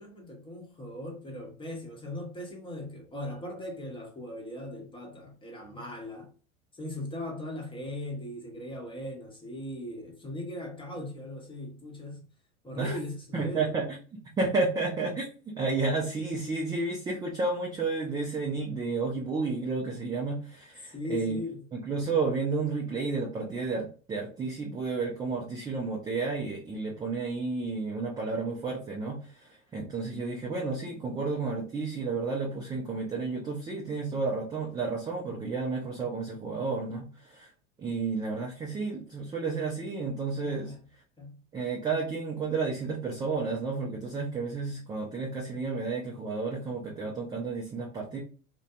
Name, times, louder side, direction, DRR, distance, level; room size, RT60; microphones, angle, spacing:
voice 1, 0.0-6.3 6.7-12.3 12.6-14.0 20.8-21.7 40.4-40.9 41.2-41.4, left 1 dB, 10° left, 0.9 m, -39 dB
voice 2, 13.3-13.9 14.1-21.4 21.7-37.5 37.8-40.7 41.5-48.2, right 4 dB, 10° right, 0.3 m, -31 dB
2.5 x 2.2 x 2.3 m
hypercardioid pair, 80°, 43 cm